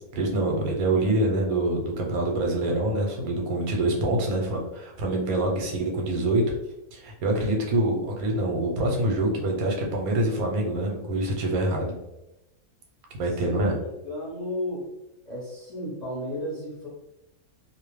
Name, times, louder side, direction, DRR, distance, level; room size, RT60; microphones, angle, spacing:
voice 1, 0.1-6.4 6.9-11.9 13.1-13.7, right 1 dB, 80° right, 0 dB, 1.2 m, -25 dB
voice 2, 13.3-14.9 15.2-16.9, left 1 dB, 35° left, -7 dB, 0.7 m, -34 dB
2.5 x 2.1 x 3.0 m, 0.95 s
omnidirectional pair, 1.5 m